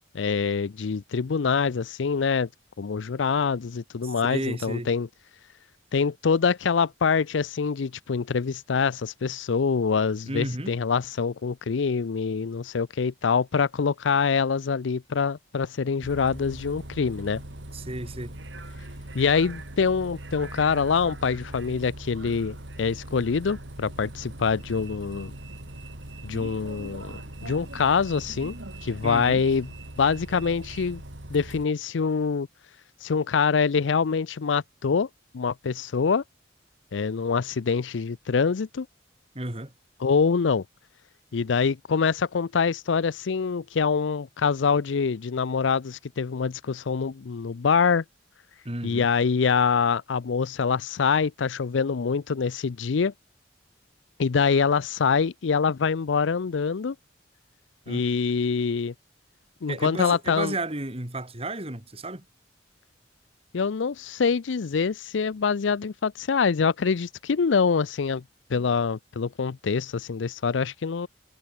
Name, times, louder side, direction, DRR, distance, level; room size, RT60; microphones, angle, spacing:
voice 1, 0.1-2.5 2.8-5.1 5.9-17.4 19.1-25.3 26.2-27.1 27.4-28.5 28.8-29.7 30.0-31.0 31.3-32.5 33.0-35.1 35.3-36.2 36.9-38.9 40.0-40.6 41.3-48.0 48.8-53.1 54.2-57.0 57.9-58.9 59.6-60.5 63.5-68.2 68.5-71.1, left 5 dB, 85° left, 0.5 m, -25 dB
voice 2, 4.0-4.9 10.3-10.7 17.7-18.3 29.0-29.4 39.3-39.7 48.6-49.1 57.9-58.1 59.7-62.2, right 2 dB, 30° right, 3.2 m, -33 dB
Bus, 16.0-31.6, right 1 dB, 80° right, 3.3 m, -41 dB
head